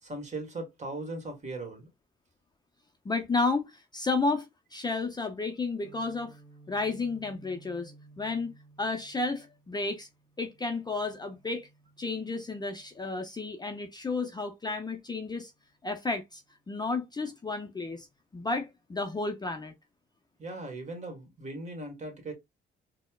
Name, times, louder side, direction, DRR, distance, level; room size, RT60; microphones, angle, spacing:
voice 1, 0.0-1.9 20.4-22.3, right 2 dB, 35° right, 1.4 m, -38 dB
voice 2, 3.0-6.4 6.7-8.5 8.8-10.1 10.4-11.7 12.0-15.5 15.8-18.1 18.3-19.7, left 3 dB, 20° left, 0.5 m, -32 dB
Guitar, 5.8-13.7, right 3 dB, 15° right, 0.8 m, -57 dB
4.1 x 2.1 x 2.2 m
cardioid pair, 90°, 20 cm